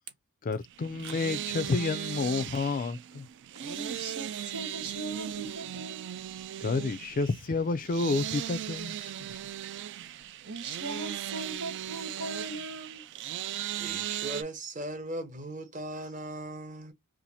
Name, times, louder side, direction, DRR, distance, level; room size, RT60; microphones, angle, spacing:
voice 1, 0.4-3.3 6.6-9.0, left 3 dB, 40° left, 0.4 m, -30 dB
sound 1, 0.7-14.4, right 11 dB, 55° right, 0.3 m, -38 dB
voice 2, 3.5-6.1 10.4-13.0, right 2 dB, 80° right, 1.2 m, -39 dB
voice 3, 13.8-16.9, right 2 dB, 35° right, 1.0 m, -38 dB
2.8 x 2.5 x 4.0 m
head